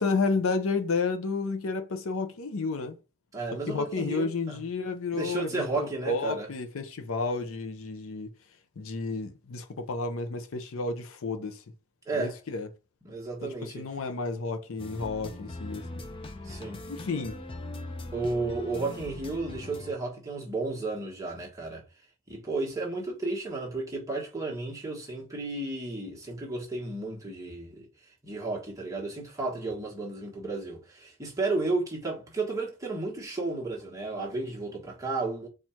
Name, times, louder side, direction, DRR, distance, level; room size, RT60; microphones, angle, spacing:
voice 1, 0.0-3.0 3.7-8.3 8.8-11.6 12.1-12.7 13.4-16.0 16.9-17.4, left 4 dB, 70° left, 0.6 m, -31 dB
voice 2, 3.3-4.6 5.1-6.5 12.1-12.3 13.0-13.9 16.4-16.8 18.1-21.8 22.3-27.9 28.2-35.5, right 3 dB, 15° right, 1.3 m, -33 dB
sound 1, 14.8-19.9, left 2 dB, 25° left, 0.5 m, -41 dB
4.4 x 2.4 x 4.3 m
head